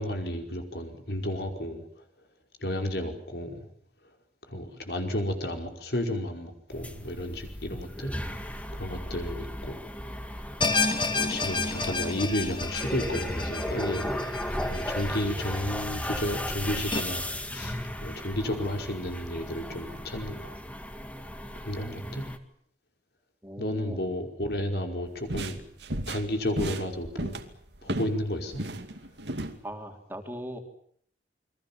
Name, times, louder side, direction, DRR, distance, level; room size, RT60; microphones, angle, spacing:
voice 1, 0.0-1.8 2.6-3.6 4.5-8.1 8.7-9.8 11.1-20.6 21.6-22.3 23.6-25.6 26.1-27.4 27.8-28.6, left 1 dB, 65° left, 4 dB, 5.2 m, -32 dB
sound 1, 6.7-22.4, equal, 10° left, 2.0 m, -36 dB
sound 2, 10.6-15.8 16.2-16.3 16.9-17.0, left 3 dB, 30° left, 2.7 m, -30 dB
voice 2, 21.8-22.2 23.4-24.0 29.6-30.6, equal, 10° right, 4 dB, 3.4 m, -40 dB
sound 3, 25.1-28.2 28.5-29.6, right 1 dB, 85° right, 2.5 m, -34 dB
29.0 x 23.0 x 7.4 m, 0.63 s
head